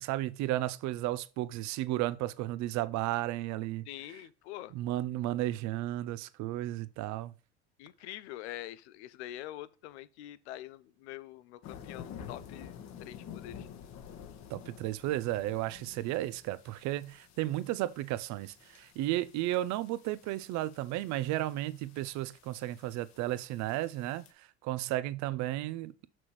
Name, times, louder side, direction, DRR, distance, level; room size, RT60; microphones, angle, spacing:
voice 1, 0.0-4.2 4.7-7.3 14.5-25.9, right 15 dB, 55° right, 0.6 m, -34 dB
voice 2, 3.9-4.7 7.8-12.7 13.0-13.7, left 14 dB, 80° left, 0.7 m, -45 dB
sound 1, 11.6-24.3, left 8 dB, 55° left, 1.3 m, -51 dB
6.1 x 6.0 x 3.1 m
hypercardioid pair, 85°, 33 cm